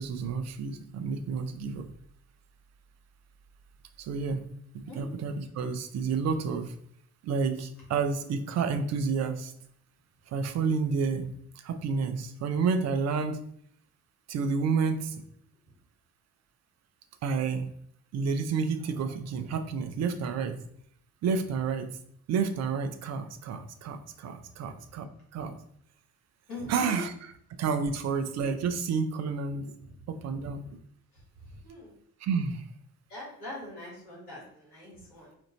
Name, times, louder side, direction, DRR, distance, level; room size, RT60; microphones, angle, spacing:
voice 1, 0.0-1.9 4.0-4.4 5.0-6.7 7.2-9.5 10.3-11.3 11.6-13.4 14.3-15.2 17.2-17.7 18.1-20.6 21.2-21.9 22.3-25.0 25.3-25.5 26.7-27.1 27.6-29.7 30.1-30.6 32.2-32.6, right 5 dB, 35° right, 8 dB, 0.5 m, -30 dB
voice 2, 26.5-27.0 29.8-30.6 31.1-31.2 31.5-32.0 33.1-35.4, left 1 dB, 80° left, -5 dB, 1.5 m, -43 dB
5.1 x 2.5 x 2.9 m, 0.67 s
figure-of-eight pair, 45°, 45 cm